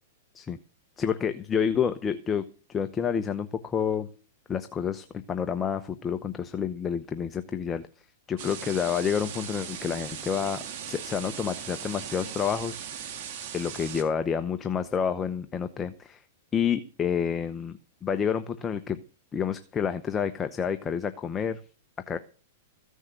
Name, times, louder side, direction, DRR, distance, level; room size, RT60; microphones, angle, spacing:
voice 1, 1.0-2.4 2.7-4.1 4.5-7.9 8.3-10.6 10.9-13.1 13.5-16.2 16.5-19.0 19.3-21.6 22.1-22.2, left 7 dB, 15° left, 9 dB, 0.8 m, -29 dB
sound 1, 8.4-14.0, right 8 dB, 50° right, 3.1 m, -38 dB
15.0 x 6.4 x 7.8 m, 0.38 s
hypercardioid pair, 140°, 0 cm